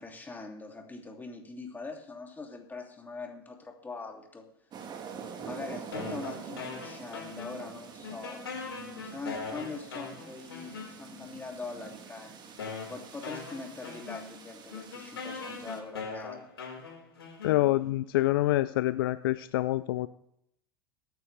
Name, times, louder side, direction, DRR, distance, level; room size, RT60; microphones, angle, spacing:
voice 1, 0.0-4.4 5.4-16.5, left 3 dB, 15° left, 2 dB, 2.8 m, -42 dB
sound 1, 4.7-15.8, right 6 dB, 35° right, 1.7 m, -46 dB
sound 2, 5.9-7.8 8.0-11.3 12.0-12.1 12.6-18.0, left 5 dB, 90° left, 4.8 m, -41 dB
voice 2, 17.4-20.1, left 16 dB, 70° left, 13 dB, 0.5 m, -26 dB
22.0 x 9.3 x 3.4 m, 0.74 s
hypercardioid pair, 95°, 13 cm